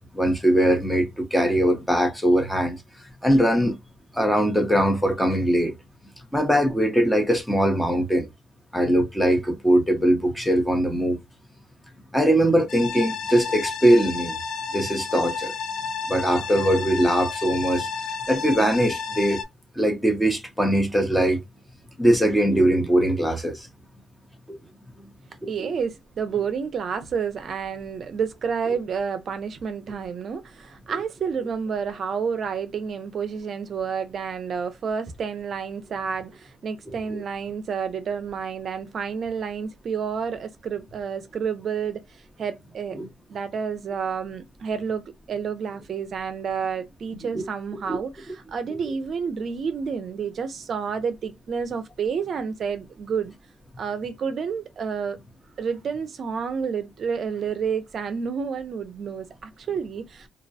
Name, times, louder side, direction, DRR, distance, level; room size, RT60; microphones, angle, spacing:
voice 1, 0.1-2.8 3.2-3.8 4.1-5.8 6.3-8.3 8.7-11.2 12.1-14.4 14.7-15.5 16.1-17.9 18.3-19.4 19.8-21.4 22.0-23.7 24.5-24.6 25.4-25.7 36.9-37.2 42.9-43.1 47.3-47.5 47.8-48.0 48.7-48.8, right 1 dB, 5° left, 0.6 m, -21 dB
sound 1, 12.7-19.4, left 5 dB, 75° left, 0.6 m, -31 dB
voice 2, 25.5-43.0 43.3-53.3 53.8-55.2 55.6-60.3, right 6 dB, 55° right, 0.4 m, -30 dB
2.3 x 2.0 x 2.6 m
cardioid pair, 90°, 0 cm